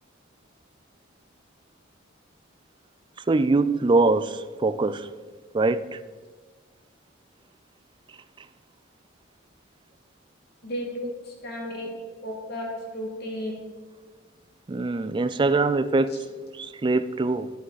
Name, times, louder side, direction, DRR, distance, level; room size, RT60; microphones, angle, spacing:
voice 1, 3.3-5.1 5.5-6.0 11.0-11.1 14.7-17.5, right 3 dB, 25° right, 0.4 m, -23 dB
voice 2, 10.6-11.9 12.2-13.6, left 1 dB, 55° left, 2.5 m, -34 dB
12.5 x 7.9 x 4.1 m
head